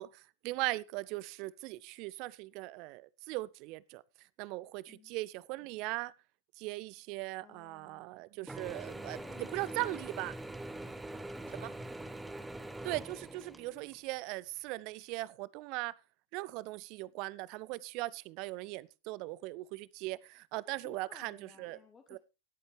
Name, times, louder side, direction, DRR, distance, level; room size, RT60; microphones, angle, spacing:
voice 1, 0.0-4.0 4.4-6.1 6.6-10.3 11.5-11.7 12.8-15.9 16.3-21.8 22.1-22.2, right 20 dB, 45° right, 0.5 m, -39 dB
voice 2, 7.4-8.1 9.0-10.2 10.8-12.0 20.8-22.2, left 6 dB, 20° left, 1.3 m, -59 dB
Mechanisms / Drill, 8.5-14.0, right 1 dB, 5° right, 1.1 m, -43 dB
18.0 x 8.0 x 3.3 m
figure-of-eight pair, 90°, 0 cm